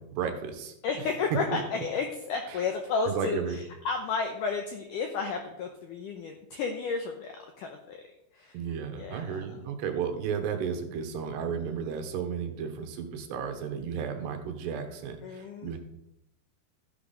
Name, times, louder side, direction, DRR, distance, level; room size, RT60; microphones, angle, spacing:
voice 1, 0.0-0.7 1.3-1.4 2.5-2.6 3.1-3.6 8.5-15.8, right 7 dB, 80° right, 6 dB, 3.2 m, -33 dB
voice 2, 0.8-8.0 8.3-8.6 9.0-9.4 15.2-15.8, left 5 dB, 80° left, 4 dB, 1.8 m, -32 dB
13.0 x 10.5 x 3.9 m, 0.85 s
omnidirectional pair, 4.9 m